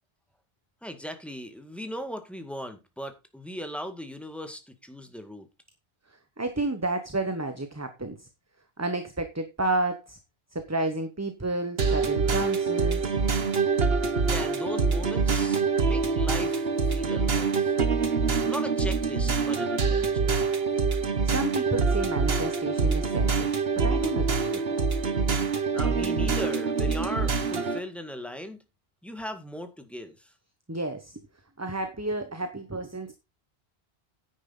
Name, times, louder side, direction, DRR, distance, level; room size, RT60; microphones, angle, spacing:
voice 1, 0.8-5.5 14.3-17.7 18.4-20.4 25.7-28.6 29.0-30.3, equal, ahead, 1.8 m, -38 dB
voice 2, 6.1-8.3 8.8-10.2 10.5-13.1 21.2-24.9 30.7-31.2 31.6-33.1, right 2 dB, 15° right, 1.1 m, -31 dB
sound 1, 11.8-27.8, right 4 dB, 70° right, 1.5 m, -25 dB
10.0 x 9.7 x 3.9 m
omnidirectional pair, 1.1 m